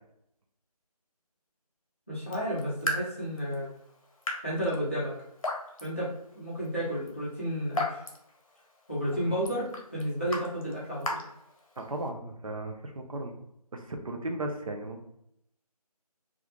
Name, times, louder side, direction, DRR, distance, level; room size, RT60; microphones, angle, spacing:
voice 1, 2.1-3.7 4.4-5.2 5.8-8.0 8.9-11.2, equal, 20° left, -8 dB, 0.5 m, -32 dB
Raindrop / Drip, 2.2-12.1, left 1 dB, 55° left, 0.7 m, -39 dB
voice 2, 11.8-13.3 13.7-15.0, right 2 dB, 60° right, 3 dB, 0.5 m, -36 dB
2.3 x 2.2 x 2.9 m, 0.78 s
figure-of-eight pair, 165°, 20 cm